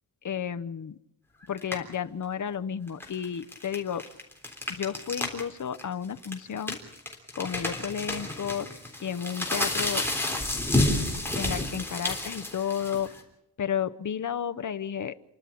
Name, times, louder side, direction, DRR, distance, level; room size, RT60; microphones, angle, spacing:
voice 1, 0.2-1.0 1.5-4.0 4.7-6.8 7.4-8.7 9.0-10.0 11.3-13.1 13.6-15.1, left 8 dB, 45° left, 11 dB, 0.8 m, -32 dB
sound 1, 1.6-1.9 2.9-5.4 5.7-5.8 6.2-13.2, left 1 dB, 5° left, 3.6 m, -30 dB
29.5 x 12.0 x 8.5 m, 0.84 s
wide cardioid pair, 170°, 40 cm